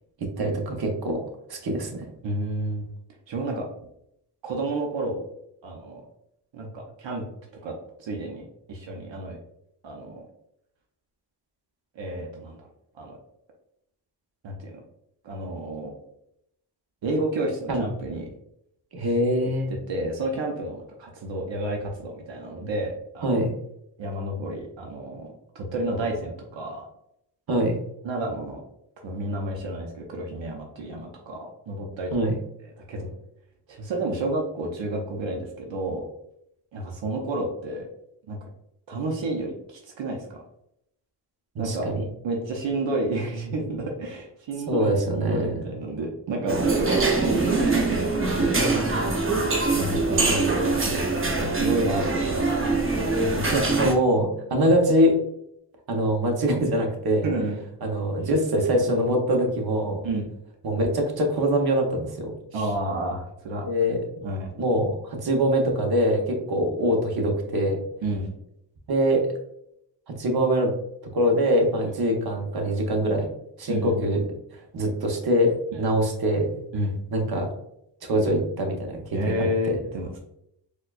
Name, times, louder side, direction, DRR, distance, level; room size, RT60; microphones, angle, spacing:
voice 1, 0.2-1.2 1.5-2.0 17.7-17.8 18.9-19.7 23.2-23.5 27.5-27.8 32.1-32.4 41.6-42.0 44.7-45.6 53.5-55.2 55.9-57.3 57.8-60.1 60.6-62.6 63.6-64.2 64.6-67.8 68.9-69.3 70.1-70.7 71.1-73.3 73.6-74.3 74.7-76.6 77.1-77.5 78.0-79.8, equal, 55° right, 1 dB, 0.8 m, -23 dB
voice 2, 2.2-2.8 3.3-3.7 4.4-5.2 5.6-6.0 6.5-7.3 7.6-7.7 8.0-9.4 9.8-10.3 11.9-12.6 12.9-13.2 14.4-14.8 15.2-16.0 17.0-18.2 19.0-19.1 19.9-23.4 24.0-26.9 28.0-28.6 29.0-32.1 32.9-33.1 33.7-36.1 36.7-37.8 38.3-38.5 38.9-40.4 41.6-41.9 42.2-48.8 49.8-52.6 53.1-53.4 57.2-57.6 60.0-60.2 62.5-63.6 64.2-64.5 68.0-68.3 73.7-74.2 75.7-75.9 76.7-76.9 79.1-80.2, right 1 dB, 85° right, 0 dB, 0.7 m, -30 dB
sound 1, 46.5-53.9, right 3 dB, 30° right, 0.6 m, -23 dB
4.2 x 2.3 x 2.3 m, 0.77 s
wide cardioid pair, 80°, 44 cm